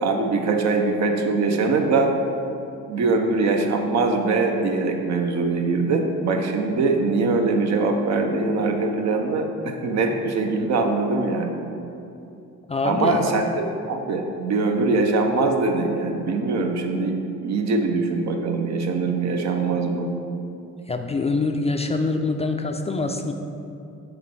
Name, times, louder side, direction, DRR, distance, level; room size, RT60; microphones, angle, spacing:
voice 1, 0.0-2.1 2.9-11.5 12.8-20.1, right 3 dB, 65° right, 3 dB, 0.8 m, -22 dB
voice 2, 12.7-13.3 20.9-23.3, left 3 dB, 20° left, 5 dB, 0.4 m, -24 dB
7.4 x 3.1 x 6.1 m, 2.7 s
cardioid pair, 90°, 30 cm